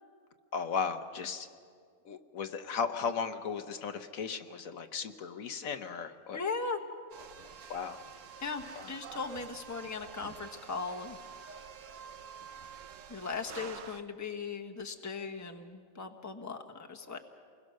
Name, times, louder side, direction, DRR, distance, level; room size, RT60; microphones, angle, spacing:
voice 1, 0.5-1.5 2.0-6.4 7.7-8.0 8.7-9.0, left 6 dB, 75° left, 7 dB, 1.4 m, -36 dB
voice 2, 6.3-6.8 8.4-11.2 13.1-17.2, left 4 dB, 15° left, 3 dB, 1.1 m, -38 dB
sound 1, 7.1-14.0, right 7 dB, 65° right, 1.2 m, -48 dB
28.5 x 21.5 x 6.4 m, 2.2 s
omnidirectional pair, 1.5 m